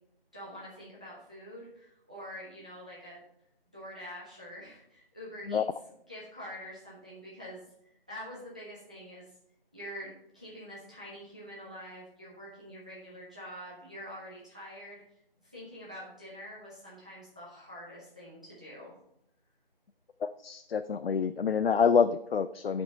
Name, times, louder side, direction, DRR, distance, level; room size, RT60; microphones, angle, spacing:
voice 1, 0.3-3.2 3.7-5.6 6.1-7.6 8.1-9.3 9.7-15.0 15.5-18.9, equal, 10° right, -7 dB, 0.6 m, -45 dB
voice 2, 20.4-22.8, left 6 dB, 75° left, 11 dB, 0.5 m, -26 dB
8.3 x 5.2 x 4.2 m, 0.77 s
figure-of-eight pair, 160°, 30 cm